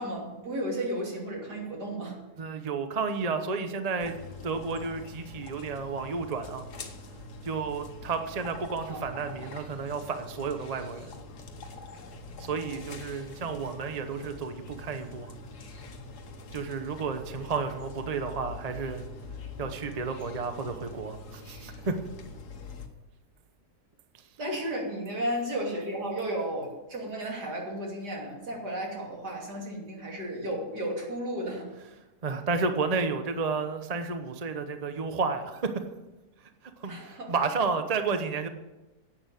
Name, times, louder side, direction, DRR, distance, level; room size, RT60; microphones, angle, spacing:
voice 1, 0.0-2.2 8.8-9.0 24.4-31.7 36.9-37.3, right 1 dB, 70° right, -1 dB, 3.5 m, -33 dB
voice 2, 2.4-4.2 4.4-6.6 7.4-11.1 12.4-15.3 16.5-19.0 19.6-22.0 32.2-35.8 36.8-38.5, right 4 dB, 30° right, 8 dB, 0.8 m, -31 dB
sound 1, 4.0-22.9, left 3 dB, 70° left, 1.8 m, -44 dB
11.0 x 8.7 x 8.4 m, 1.1 s
omnidirectional pair, 1.8 m